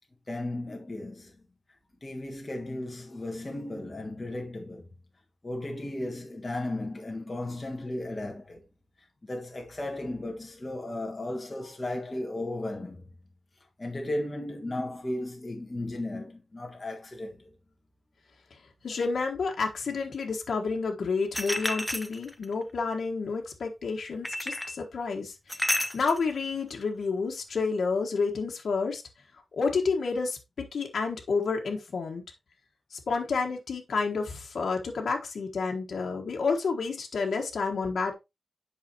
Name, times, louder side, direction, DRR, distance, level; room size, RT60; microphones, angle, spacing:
voice 1, 0.3-1.3 2.0-4.9 5.4-8.6 9.2-13.1 13.8-17.4, left 1 dB, 25° left, 1.5 m, -35 dB
voice 2, 18.8-29.0 29.5-32.2 32.9-38.1, left 4 dB, 85° left, 1.3 m, -30 dB
sound 1, 21.3-22.5 24.2-24.8 25.5-26.2, left 1 dB, 5° left, 0.5 m, -30 dB
8.1 x 5.6 x 2.9 m
wide cardioid pair, 160°, 0 cm